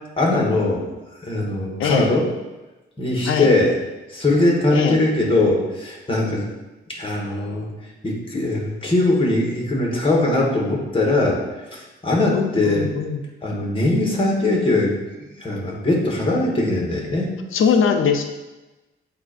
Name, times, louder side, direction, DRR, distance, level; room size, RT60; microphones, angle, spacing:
voice 1, 0.2-0.8 1.2-2.2 3.0-3.7 4.1-6.5 6.9-7.7 8.0-11.4 11.7-12.9 13.4-15.0 15.4-17.3, left 2 dB, 25° left, -2 dB, 2.0 m, -20 dB
voice 2, 1.8-2.1 3.3-3.5 4.7-5.0 12.3-13.2 17.5-18.2, left 6 dB, 75° left, 6 dB, 0.7 m, -21 dB
8.0 x 2.8 x 4.5 m, 1.1 s
cardioid pair, 75°, 21 cm